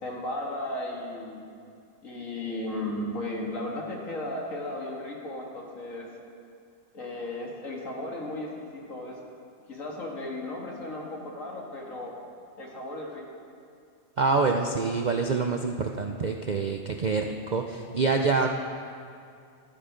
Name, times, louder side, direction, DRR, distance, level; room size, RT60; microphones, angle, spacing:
voice 1, 0.0-1.4 2.0-6.1 6.9-9.2 9.7-12.2 12.6-13.2, left 1 dB, 65° left, -1 dB, 2.3 m, -35 dB
voice 2, 14.2-18.5, right 4 dB, 55° right, 3 dB, 0.5 m, -26 dB
12.5 x 12.5 x 5.1 m, 2.4 s
omnidirectional pair, 1.5 m